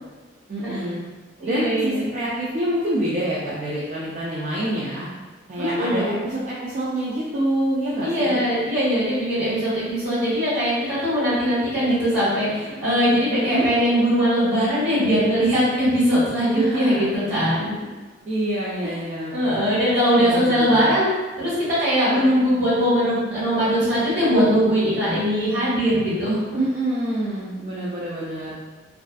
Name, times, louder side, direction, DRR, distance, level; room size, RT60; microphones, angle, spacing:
voice 1, 0.5-1.0 1.4-5.1 5.5-8.4 13.3-13.7 16.5-17.1 18.3-19.3 20.2-20.9 26.6-28.5, right 1 dB, 40° right, -7 dB, 0.3 m, -26 dB
voice 2, 1.4-2.1 5.5-6.2 8.0-17.8 18.8-19.0 19.3-21.1 21.4-21.5 21.8-26.6, equal, 65° right, -10 dB, 1.3 m, -21 dB
2.4 x 2.2 x 2.4 m, 1.3 s
head